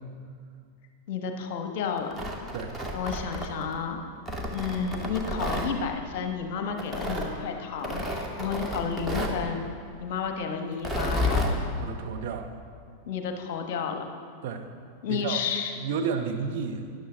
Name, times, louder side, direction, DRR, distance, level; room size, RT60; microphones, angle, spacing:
voice 1, 1.1-2.1 2.9-4.0 4.5-9.6 10.0-11.5 13.0-14.0 15.0-15.7, left 6 dB, 50° left, 5 dB, 1.1 m, -31 dB
Tearing, 2.0-3.8 4.3-5.7 6.8-7.3 7.8-9.4 10.7-11.5, left 1 dB, 5° right, 1.5 m, -30 dB
voice 2, 11.8-12.6 14.4-14.7 15.1-15.4 15.8-17.0, right 6 dB, 50° right, 4 dB, 0.9 m, -32 dB
13.5 x 10.5 x 3.7 m, 2.2 s
figure-of-eight pair, 90°, 0 cm